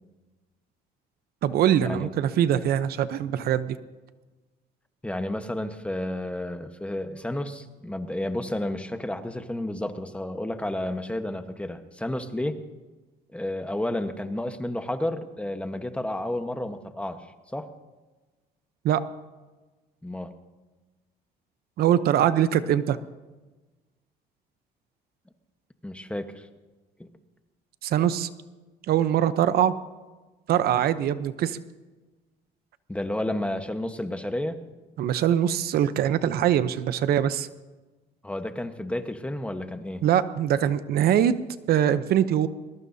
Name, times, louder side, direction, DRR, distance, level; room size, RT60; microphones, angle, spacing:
voice 1, 1.4-3.8 18.8-19.0 21.8-23.0 27.8-28.3 28.9-29.7 30.5-31.6 35.0-37.5 40.0-41.4 41.7-42.5, right 10 dB, 65° right, 12 dB, 0.8 m, -22 dB
voice 2, 5.0-12.6 13.3-17.3 17.5-17.7 20.0-20.3 25.8-26.5 27.0-27.1 32.9-34.6 38.2-40.1, left 1 dB, 5° left, 7 dB, 1.2 m, -31 dB
22.0 x 21.0 x 2.8 m, 1.2 s
cardioid pair, 110°, 17 cm